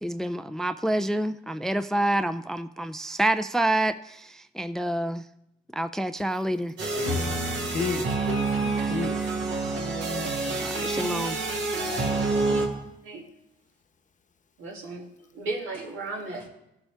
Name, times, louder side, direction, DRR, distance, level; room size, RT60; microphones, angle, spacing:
voice 1, 0.0-5.2 5.7-6.7 8.9-9.0 10.6-11.4, right 1 dB, ahead, 0.3 m, -27 dB
sound 1, 6.8-12.7, right 3 dB, 70° right, 2.1 m, -27 dB
voice 2, 7.0-7.4 7.7-9.4 11.8-12.8, left 5 dB, 40° left, 0.9 m, -34 dB
voice 3, 14.6-15.1 15.3-16.5, right 3 dB, 90° right, 2.3 m, -35 dB
16.0 x 7.0 x 3.4 m
cardioid pair, 90°, 20 cm